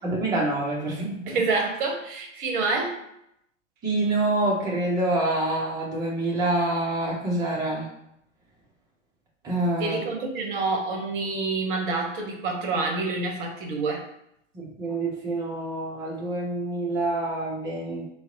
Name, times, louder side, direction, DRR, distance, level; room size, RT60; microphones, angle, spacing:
voice 1, 0.0-1.2 3.8-7.9 9.4-10.0 14.5-18.1, right 2 dB, 10° right, -3 dB, 0.5 m, -26 dB
voice 2, 1.3-3.0 9.8-14.0, right 3 dB, 40° right, 1 dB, 0.8 m, -27 dB
3.9 x 2.1 x 2.5 m, 0.78 s
figure-of-eight pair, 105°, 39 cm